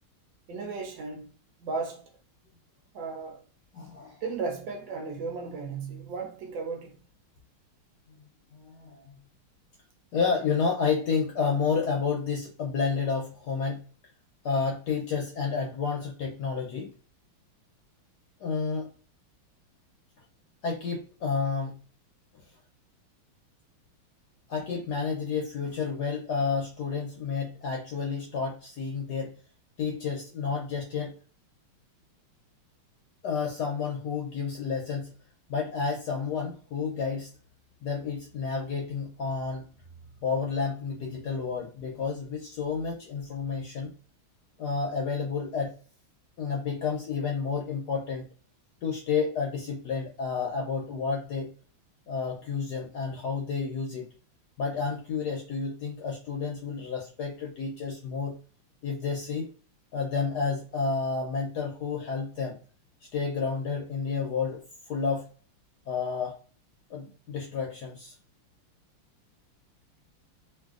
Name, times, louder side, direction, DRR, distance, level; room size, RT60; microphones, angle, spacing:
voice 1, 0.5-1.3 1.6-2.0 2.9-3.4 4.2-7.0, right 4 dB, 70° right, 1.3 m, -35 dB
voice 2, 3.7-4.2 8.5-9.2 10.1-13.8 14.4-16.9 18.4-18.9 20.6-21.8 24.5-29.3 29.8-31.1 33.2-35.1 35.5-37.3 37.8-39.6 40.2-43.9 44.6-45.7 46.4-48.2 48.8-51.5 52.1-54.1 54.6-58.4 58.8-59.5 59.9-62.6 63.1-64.6 64.9-65.3 65.9-66.4 66.9-68.2, left 5 dB, 70° left, 1.0 m, -30 dB
3.2 x 2.5 x 2.3 m
omnidirectional pair, 2.3 m